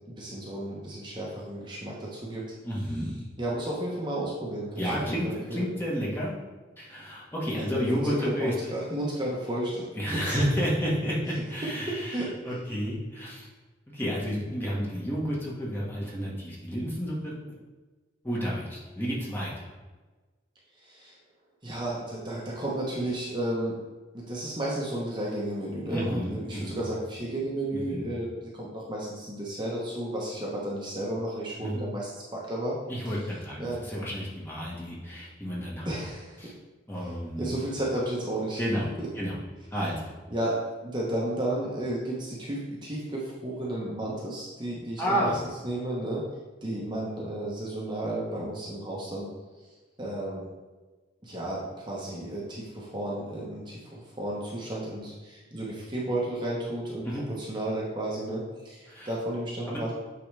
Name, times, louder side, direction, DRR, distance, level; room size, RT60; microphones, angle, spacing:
voice 1, 0.1-2.4 3.4-5.7 7.6-7.7 8.0-9.8 10.3-10.4 11.9-12.3 20.8-21.1 21.6-23.8 24.1-32.8 33.6-33.8 35.8-36.4 37.4-38.6 39.0-39.1 40.3-45.3 45.6-46.2 46.6-49.3 50.0-50.5 51.2-57.0 57.4-59.9, right 1 dB, 25° right, -5 dB, 1.1 m, -33 dB
voice 2, 2.6-3.2 4.8-6.3 6.8-8.7 9.9-13.5 13.9-17.3 18.2-19.7 25.9-26.8 27.7-28.1 31.6-31.8 32.9-35.9 36.4-36.5 36.9-37.6 38.6-38.9 39.1-39.4 39.7-40.1 45.0-45.4 57.0-57.2 58.9-59.1 59.7-59.8, equal, 10° left, -5 dB, 1.5 m, -31 dB
9.0 x 3.9 x 3.4 m, 1.3 s
head